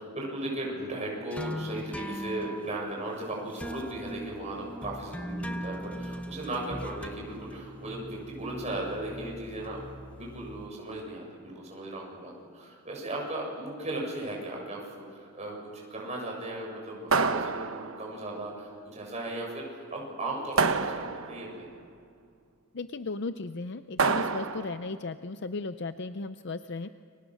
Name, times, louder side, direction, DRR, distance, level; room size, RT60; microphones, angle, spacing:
voice 1, 0.0-9.8 10.1-14.8 15.1-21.7, right 1 dB, 30° right, -1 dB, 7.4 m, -37 dB
sound 1, 1.3-10.7, equal, 5° left, 0.8 m, -40 dB
sound 2, 17.1-18.2 20.6-21.5 24.0-24.9, right 4 dB, 65° right, 1.1 m, -27 dB
voice 2, 22.7-26.9, left 3 dB, 50° left, 10 dB, 0.6 m, -36 dB
30.0 x 24.5 x 6.5 m, 2.3 s
head